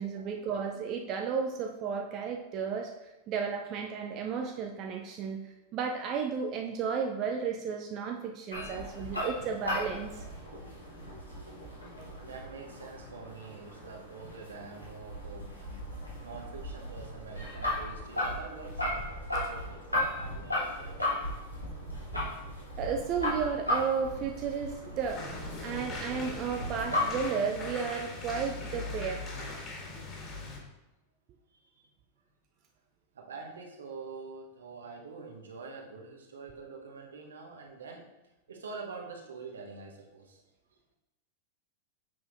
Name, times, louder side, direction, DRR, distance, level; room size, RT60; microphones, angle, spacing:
voice 1, 0.0-10.2 22.8-25.2 25.6-29.2, right 6 dB, 35° right, 2 dB, 0.5 m, -33 dB
sound 1, 8.5-27.3, left 1 dB, 85° left, 1.6 m, -36 dB
voice 2, 12.2-21.2 31.5-31.9 33.1-38.1 38.5-40.4, right 4 dB, 65° right, 1 dB, 1.0 m, -46 dB
sound 2, 25.1-30.6, left 2 dB, 30° left, 1.9 m, -40 dB
7.5 x 5.8 x 2.5 m, 0.99 s
figure-of-eight pair, 90°, 0 cm